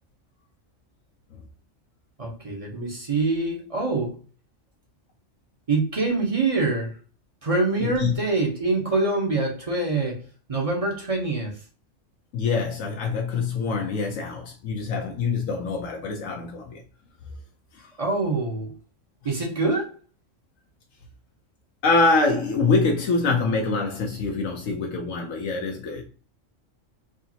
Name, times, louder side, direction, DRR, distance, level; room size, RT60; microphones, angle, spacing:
voice 1, 2.2-4.2 5.7-7.0 7.4-10.2 10.5-11.6 18.0-18.7 19.2-19.9, right 3 dB, 30° right, 0.9 m, -25 dB
voice 2, 7.8-8.1 12.3-16.8 17.7-17.9 21.8-26.0, left 3 dB, 80° left, 1.1 m, -25 dB
4.9 x 2.6 x 2.8 m
omnidirectional pair, 1.4 m